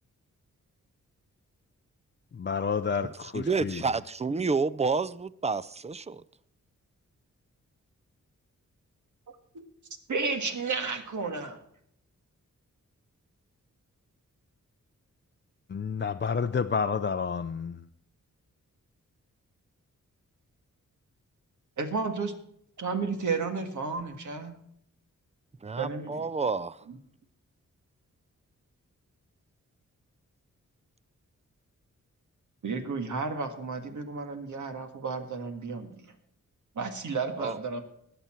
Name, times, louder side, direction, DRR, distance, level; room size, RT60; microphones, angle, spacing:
voice 1, 2.3-3.8 15.7-17.8, left 6 dB, 35° left, 0.5 m, -30 dB
voice 2, 3.0-6.2 25.6-26.8 37.4-37.6, right 4 dB, 20° right, 0.5 m, -30 dB
voice 3, 10.1-11.6 21.8-22.3 22.8-24.6 25.8-26.2 26.9-27.0 32.6-36.1 36.8-37.8, right 4 dB, 70° right, 1.8 m, -32 dB
20.0 x 7.0 x 4.5 m
wide cardioid pair, 95°, 31 cm